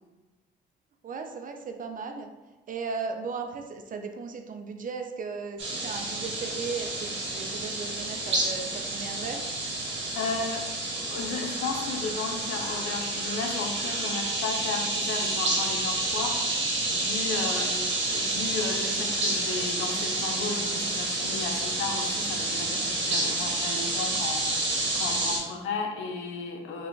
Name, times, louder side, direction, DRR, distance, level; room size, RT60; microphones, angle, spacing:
voice 1, 1.0-2.3 2.7-9.4 17.5-17.7, right 5 dB, 45° right, 5 dB, 0.5 m, -36 dB
sound 1, 5.6-25.4, right 2 dB, 70° right, 1.1 m, -29 dB
voice 2, 10.2-10.6 11.1-16.4 16.9-26.9, left 4 dB, 85° left, 3 dB, 0.6 m, -34 dB
3.3 x 2.4 x 3.8 m, 1.1 s
cardioid pair, 90°, 20 cm